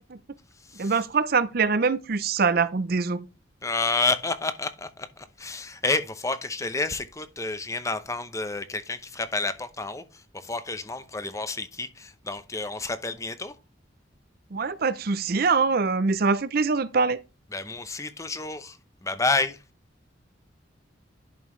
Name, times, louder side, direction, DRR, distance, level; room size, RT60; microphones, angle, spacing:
voice 1, 0.8-3.2 14.5-17.2, right 4 dB, 50° right, 0.6 m, -24 dB
voice 2, 3.6-10.0 10.3-13.5 17.5-18.8 19.0-19.6, left 3 dB, 15° left, 0.7 m, -29 dB
11.0 x 5.3 x 3.1 m
head